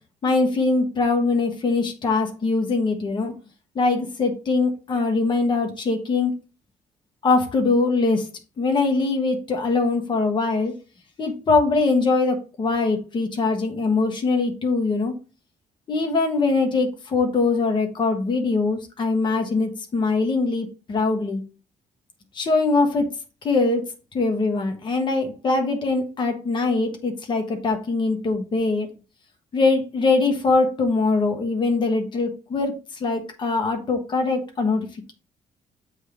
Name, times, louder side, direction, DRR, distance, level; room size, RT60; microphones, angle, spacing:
voice 1, 0.2-3.3 3.7-6.3 7.2-8.3 8.6-10.7 11.2-15.1 15.9-21.4 22.3-23.1 23.4-28.9 29.5-35.1, left 3 dB, 35° left, 4 dB, 1.2 m, -22 dB
7.7 x 3.3 x 5.1 m, 0.33 s
cardioid pair, 170°, 13 cm